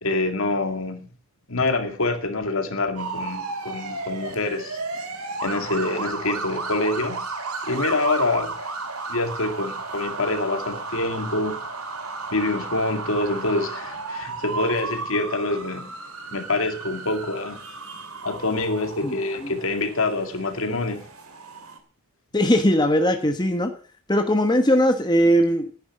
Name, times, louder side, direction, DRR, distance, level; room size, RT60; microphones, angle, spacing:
voice 1, 0.0-1.0 1.5-4.8 5.4-7.2 7.7-8.6 9.1-11.6 12.3-15.9 16.3-17.6 18.2-21.0, left 2 dB, 65° left, 2.1 m, -26 dB
sound 1, 3.0-21.8, right 3 dB, 70° right, 2.5 m, -34 dB
voice 2, 22.3-23.7 24.1-25.7, equal, 20° left, 1.2 m, -19 dB
10.5 x 9.7 x 7.3 m
head